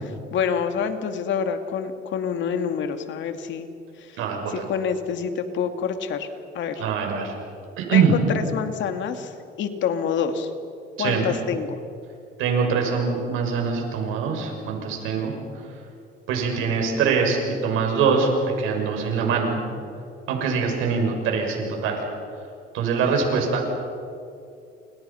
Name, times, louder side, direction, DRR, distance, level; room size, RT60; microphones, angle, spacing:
voice 1, 0.0-3.7 4.0-4.2 4.5-6.3 6.5-6.8 7.9-9.3 9.6-10.5 11.0-11.8, left 7 dB, 65° left, 7 dB, 2.5 m, -27 dB
voice 2, 4.2-4.6 6.8-7.3 7.8-8.2 11.0-11.3 12.4-15.3 16.3-18.3 18.6-19.6 20.3-22.0 22.7-23.7, right 5 dB, 85° right, 2 dB, 6.7 m, -23 dB
29.5 x 28.5 x 5.8 m, 2.5 s
cardioid pair, 125°, 20 cm